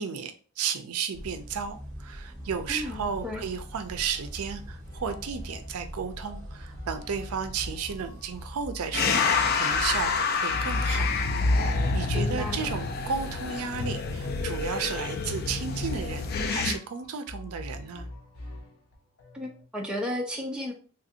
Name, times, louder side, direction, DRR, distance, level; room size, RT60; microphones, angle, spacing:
voice 1, 0.0-11.1 11.6-18.1, right 6 dB, 80° right, 0.4 m, -33 dB
sound 1, 1.1-8.7, equal, 40° right, 1.3 m, -42 dB
sound 2, 2.4-19.7, left 1 dB, 75° left, 0.8 m, -45 dB
voice 2, 2.7-3.4 12.1-12.7 19.3-20.7, left 1 dB, 5° right, 0.5 m, -34 dB
sound 3, 8.9-16.8, left 4 dB, 45° left, 0.4 m, -27 dB
3.4 x 2.5 x 2.7 m
head